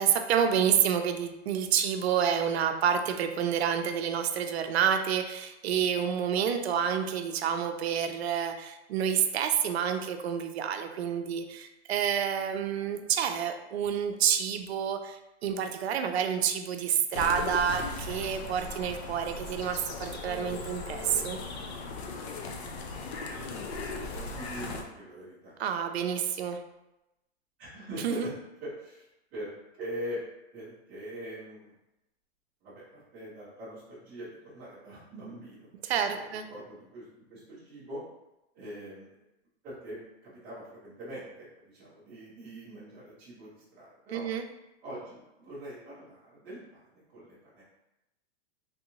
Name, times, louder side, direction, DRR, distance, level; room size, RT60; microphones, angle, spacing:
voice 1, 0.0-21.4 25.6-26.6 28.0-28.3 35.8-36.4 44.1-44.4, right 8 dB, 75° right, 6 dB, 0.5 m, -28 dB
sound 1, 17.1-24.8, left 3 dB, 75° left, 0.7 m, -38 dB
voice 2, 22.7-23.2 23.8-25.6 27.6-28.3 28.6-30.2 30.5-31.7 32.6-35.7 36.1-38.0 38.5-39.2 39.6-44.3 44.8-46.6 46.9-47.6, right 1 dB, 5° right, -14 dB, 0.4 m, -43 dB
3.4 x 2.8 x 2.7 m, 0.92 s
supercardioid pair, 175°, 32 cm